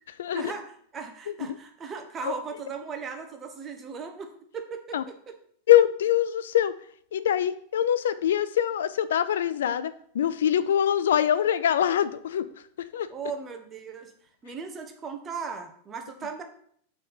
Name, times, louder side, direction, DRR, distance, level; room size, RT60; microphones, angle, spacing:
voice 1, 0.3-5.3 13.1-14.1 14.4-16.4, right 5 dB, 25° right, 5 dB, 1.0 m, -37 dB
voice 2, 5.7-6.7 7.1-12.5 12.8-13.1, left 10 dB, 60° left, 14 dB, 0.3 m, -23 dB
5.5 x 3.5 x 5.5 m, 0.63 s
figure-of-eight pair, 90°, 0 cm